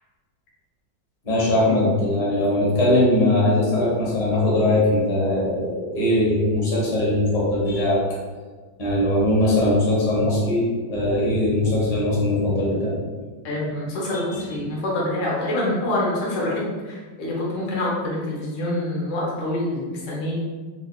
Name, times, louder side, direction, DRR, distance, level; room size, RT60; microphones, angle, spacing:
voice 1, 1.2-8.0 8.8-13.0 14.1-14.2, left 1 dB, 35° left, -6 dB, 0.6 m, -20 dB
voice 2, 13.4-20.4, left 1 dB, 55° left, -5 dB, 1.0 m, -26 dB
3.9 x 2.9 x 2.3 m, 1.4 s
omnidirectional pair, 2.2 m